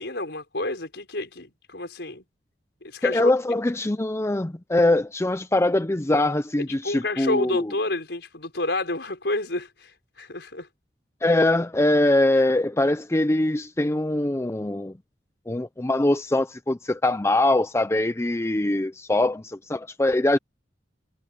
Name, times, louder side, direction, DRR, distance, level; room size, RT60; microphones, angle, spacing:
voice 1, 0.0-2.2 2.8-3.3 6.8-9.9 10.2-10.7, left 2 dB, 65° left, 6.0 m, -29 dB
voice 2, 3.0-7.7 11.2-14.9 15.5-20.4, left 1 dB, 15° left, 0.5 m, -22 dB
head